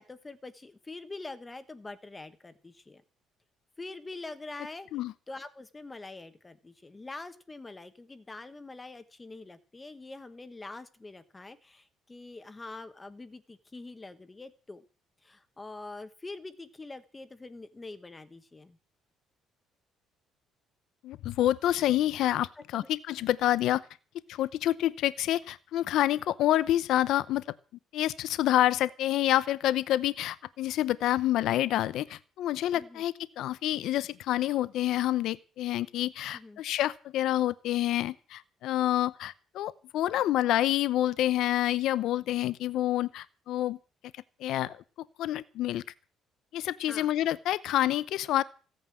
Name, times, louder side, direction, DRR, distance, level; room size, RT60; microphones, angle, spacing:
voice 1, 0.0-3.0 3.8-4.9 5.3-14.8 15.2-18.8 22.6-22.9 32.7-33.0 36.3-36.6 46.9-47.1, left 3 dB, 15° left, 12 dB, 1.2 m, -44 dB
voice 2, 21.0-23.8 24.3-27.4 27.9-43.8 44.4-44.8 45.2-45.8 46.5-48.4, left 13 dB, 70° left, 17 dB, 0.7 m, -28 dB
16.0 x 9.4 x 7.6 m, 0.37 s
cardioid pair, 170°, 0 cm